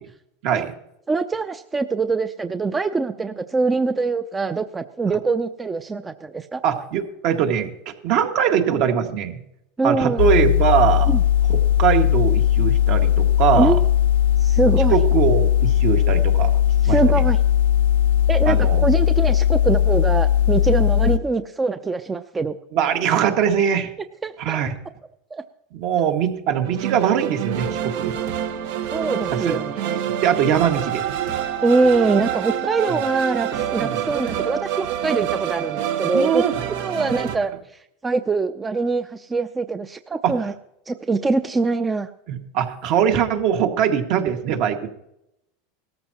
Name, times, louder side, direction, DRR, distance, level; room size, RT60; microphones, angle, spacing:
voice 1, 1.1-6.6 9.8-10.2 11.1-11.2 13.6-13.9 14.4-15.0 16.8-17.4 18.3-22.6 24.2-24.6 25.3-25.4 28.9-30.0 31.6-36.4 36.8-40.5 40.9-42.1, right 3 dB, 15° right, 10 dB, 0.5 m, -23 dB
voice 2, 6.6-9.4 9.8-11.1 11.5-13.8 14.9-16.5 16.9-17.0 18.5-18.9 22.7-23.9 24.4-24.7 25.7-28.1 29.4-29.6 30.2-31.1 33.8-34.0 36.1-36.5 40.2-40.3 42.3-44.9, right 8 dB, 55° right, 5 dB, 1.9 m, -21 dB
sound 1, 10.2-21.2, left 11 dB, 85° left, 0.5 m, -18 dB
sound 2, 26.6-37.4, right 10 dB, 75° right, 1.4 m, -27 dB
18.0 x 14.0 x 3.0 m, 0.80 s
supercardioid pair, 130°, 0 cm